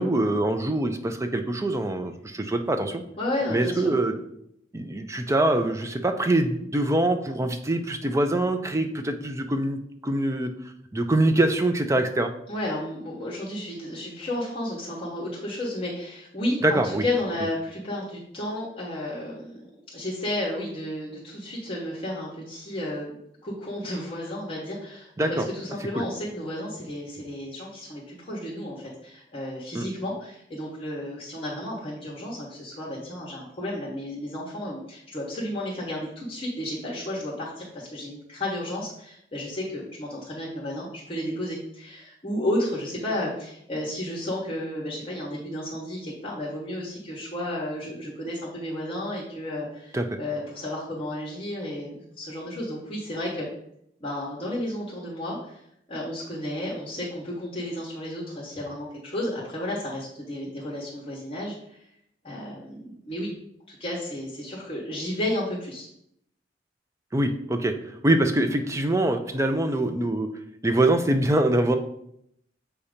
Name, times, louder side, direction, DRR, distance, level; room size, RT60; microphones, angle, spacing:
voice 1, 0.0-3.0 3.5-4.1 4.7-10.5 10.9-12.3 16.6-17.0 25.2-25.4 26.0-26.1 29.7-29.9 49.9-50.0 67.1-67.7 68.0-70.3 70.6-71.7, right 1 dB, 15° right, 6 dB, 0.5 m, -24 dB
voice 2, 3.2-3.9 12.5-23.2 23.4-53.5 54.0-55.6 55.9-61.8 62.2-63.3 63.7-65.9, left 1 dB, 30° left, -4 dB, 1.1 m, -32 dB
7.0 x 2.8 x 5.0 m, 0.74 s
head